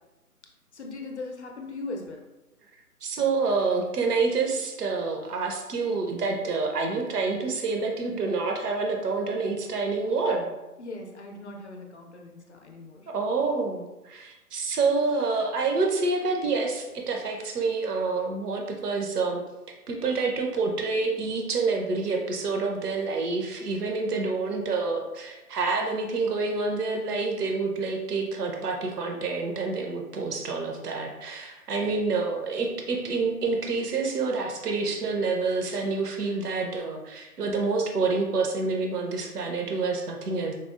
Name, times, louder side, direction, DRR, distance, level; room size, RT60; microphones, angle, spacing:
voice 1, 0.7-2.2 10.8-13.1, left 2 dB, 50° left, 1 dB, 0.5 m, -39 dB
voice 2, 3.0-10.5 13.1-19.4 19.9-40.5, right 4 dB, 80° right, 1 dB, 0.7 m, -27 dB
4.1 x 2.0 x 2.3 m, 1.0 s
figure-of-eight pair, 145°, 46 cm